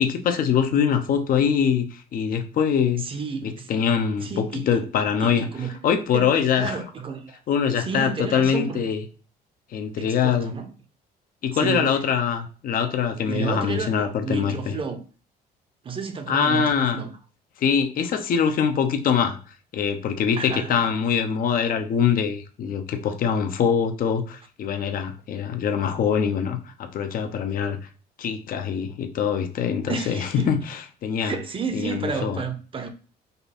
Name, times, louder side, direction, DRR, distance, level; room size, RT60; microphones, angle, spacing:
voice 1, 0.0-1.9 2.1-3.0 3.4-5.5 5.8-6.8 7.5-9.0 9.7-10.5 11.4-14.7 16.3-17.0 17.6-19.4 19.7-27.8 28.2-30.6 31.0-31.3 31.7-32.4, left 7 dB, 55° left, 0.8 m, -23 dB
voice 2, 3.0-3.7 4.2-4.8 5.2-7.4 7.8-8.9 10.0-10.7 11.5-11.9 13.2-15.0 15.8-17.1 20.4-20.8 29.9-30.5 31.2-32.9, right 5 dB, 30° right, 0.8 m, -31 dB
5.3 x 2.3 x 4.2 m
cardioid pair, 110°, 17 cm